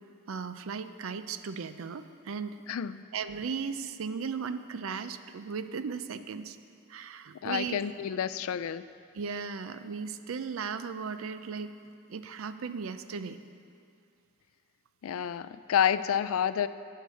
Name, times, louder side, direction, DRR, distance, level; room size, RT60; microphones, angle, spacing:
voice 1, 0.3-2.6 3.1-6.6 6.9-7.8 9.1-11.7 12.1-13.4, right 5 dB, 70° right, 11 dB, 0.4 m, -36 dB
voice 2, 2.7-3.0 7.4-8.8 15.0-16.7, left 8 dB, 75° left, 14 dB, 0.3 m, -29 dB
9.2 x 6.7 x 6.9 m, 2.4 s
head